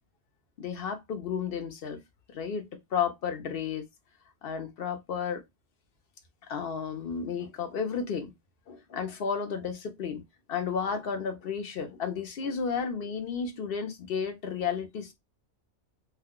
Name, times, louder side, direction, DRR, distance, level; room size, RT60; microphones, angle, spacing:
voice 1, 0.6-2.0 2.3-3.9 4.4-5.4 6.5-8.3 8.7-10.2 10.5-15.1, left 6 dB, 55° left, 0.9 m, -32 dB
2.5 x 2.2 x 3.6 m
omnidirectional pair, 1.2 m